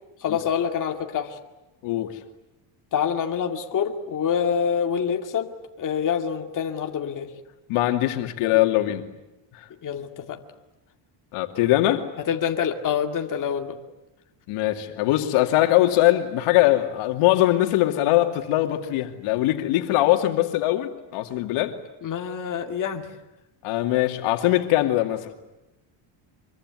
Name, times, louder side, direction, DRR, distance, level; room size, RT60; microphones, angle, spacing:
voice 1, 0.2-1.4 2.9-5.5 5.8-7.3 9.8-10.4 12.2-13.8 22.0-23.0, left 7 dB, 40° left, 4 dB, 2.3 m, -26 dB
voice 2, 7.7-9.1 11.3-12.1 14.5-21.8 23.6-25.3, left 15 dB, 85° left, 5 dB, 2.7 m, -21 dB
25.5 x 23.5 x 9.6 m, 0.97 s
cardioid pair, 145°, 50 cm